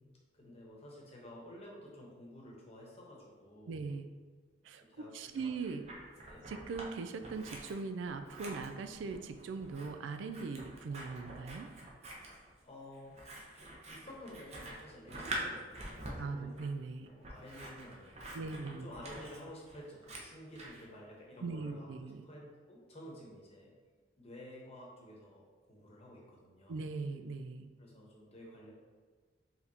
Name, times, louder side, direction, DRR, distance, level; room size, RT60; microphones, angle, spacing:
voice 1, 0.3-3.9 4.9-5.5 6.3-6.5 12.6-16.6 17.1-23.7 24.2-26.8 27.8-28.7, left 1 dB, 35° left, -3 dB, 1.0 m, -52 dB
voice 2, 3.7-4.1 4.6-4.8 5.1-5.8 6.5-11.7 16.2-17.1 18.3-18.9 21.4-22.2 26.7-27.7, right 4 dB, 90° right, 8 dB, 0.3 m, -40 dB
Scissors, 5.3-6.9 7.2-20.8, right 1 dB, 35° right, 0.7 m, -46 dB
4.6 x 3.5 x 2.8 m, 1.5 s
head